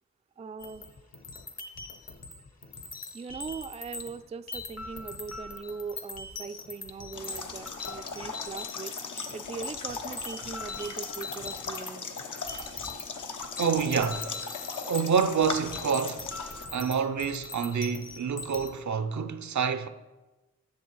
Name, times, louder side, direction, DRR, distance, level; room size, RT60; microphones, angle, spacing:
voice 1, 0.4-0.8 3.1-8.9 9.3-12.1 16.9-17.0, right 5 dB, 20° right, 0.4 m, -40 dB
sound 1, 0.6-4.2 4.5-11.9 12.2-18.7, left 3 dB, 55° left, 1.1 m, -41 dB
sound 2, 7.1-16.7, left 4 dB, 80° left, 0.9 m, -38 dB
voice 2, 13.6-14.5 14.9-16.3 16.7-19.9, right 6 dB, 70° right, 0.7 m, -27 dB
10.5 x 6.4 x 4.7 m
cardioid pair, 65°, 30 cm